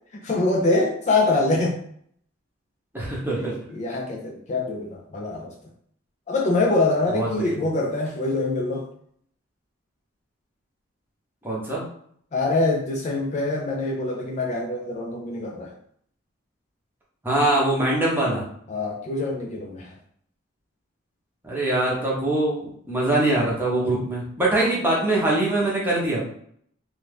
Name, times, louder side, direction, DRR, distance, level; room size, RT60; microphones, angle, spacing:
voice 1, 0.2-1.8 3.7-5.5 6.3-8.9 12.3-15.7 18.7-19.9, left 2 dB, 35° left, 0 dB, 0.3 m, -24 dB
voice 2, 2.9-3.6 7.1-7.6 11.4-11.8 17.2-18.4 21.4-26.2, right 2 dB, 10° right, -5 dB, 0.8 m, -23 dB
2.6 x 2.3 x 3.4 m, 0.65 s
head